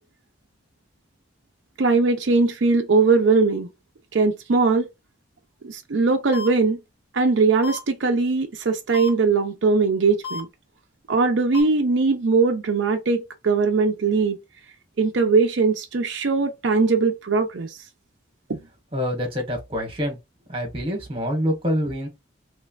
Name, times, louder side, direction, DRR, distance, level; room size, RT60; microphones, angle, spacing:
voice 1, 1.8-3.7 4.1-4.9 5.6-6.8 7.1-10.5 11.1-14.4 15.0-17.8 18.5-18.6, right 4 dB, 75° right, 0.5 m, -20 dB
sound 1, 6.3-6.5 7.6-7.8 8.9-9.1 10.2-10.4 11.5-11.6, left 5 dB, 55° left, 1.8 m, -31 dB
voice 2, 18.9-20.2 20.5-22.1, equal, 30° right, 1.2 m, -26 dB
3.2 x 3.1 x 2.4 m
head